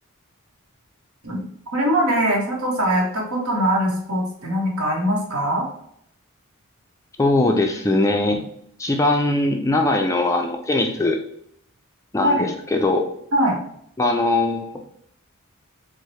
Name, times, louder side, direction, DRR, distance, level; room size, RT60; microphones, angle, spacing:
voice 1, 1.7-5.7 12.2-12.4 13.3-13.6, equal, 65° right, -1 dB, 1.0 m, -21 dB
voice 2, 7.2-8.5 8.8-11.2 12.1-13.1 14.0-14.8, left 2 dB, 15° left, 3 dB, 0.4 m, -20 dB
4.4 x 2.1 x 3.1 m, 0.70 s
head